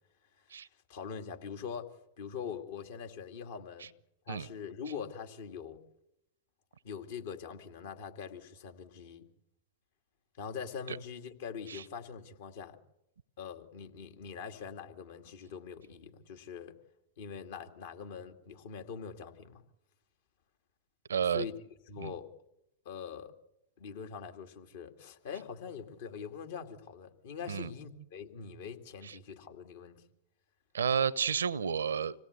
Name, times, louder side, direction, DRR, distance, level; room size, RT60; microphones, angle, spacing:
voice 1, 0.9-1.9 2.2-3.9 4.3-5.8 6.8-9.3 10.4-12.8 13.4-16.7 17.2-19.6 21.3-21.5 21.9-22.3 22.9-23.3 23.8-30.0, left 6 dB, 60° left, 2.3 m, -43 dB
voice 2, 21.1-21.5 22.0-22.1 27.5-27.7 29.0-29.2 30.7-32.1, right 7 dB, 80° right, 0.8 m, -31 dB
26.0 x 17.5 x 8.2 m
hypercardioid pair, 100°, 0 cm